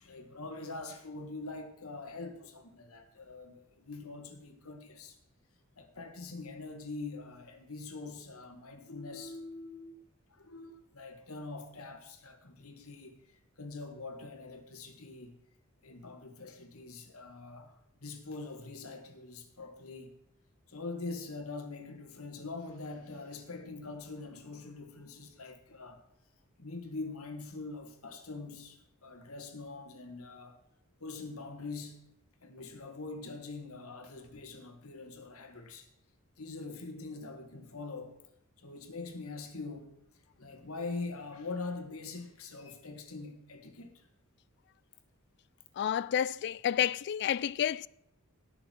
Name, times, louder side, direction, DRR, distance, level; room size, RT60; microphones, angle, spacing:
voice 1, 0.0-5.2 5.8-9.9 10.3-15.3 15.8-20.1 20.7-26.0 26.6-30.6 31.0-32.0 32.4-35.9 36.4-38.2 38.6-39.9 40.4-44.1, left 3 dB, 80° left, 1.6 m, -43 dB
voice 2, 45.8-47.9, left 9 dB, 55° left, 0.3 m, -30 dB
17.5 x 6.4 x 4.5 m
head